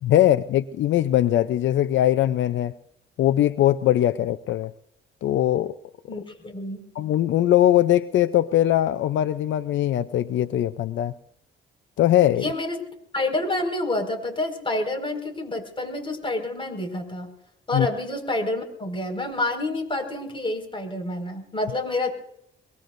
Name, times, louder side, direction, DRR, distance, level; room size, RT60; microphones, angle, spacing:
voice 1, 0.0-2.7 3.2-4.7 5.2-5.7 7.0-11.1 12.0-12.4 17.7-17.9, left 12 dB, 70° left, 13 dB, 0.6 m, -21 dB
voice 2, 6.1-6.8 12.3-12.8 13.1-17.3 17.7-22.1, left 2 dB, 25° left, 5 dB, 5.3 m, -28 dB
23.5 x 23.0 x 2.6 m, 0.74 s
cardioid pair, 90°, 20 cm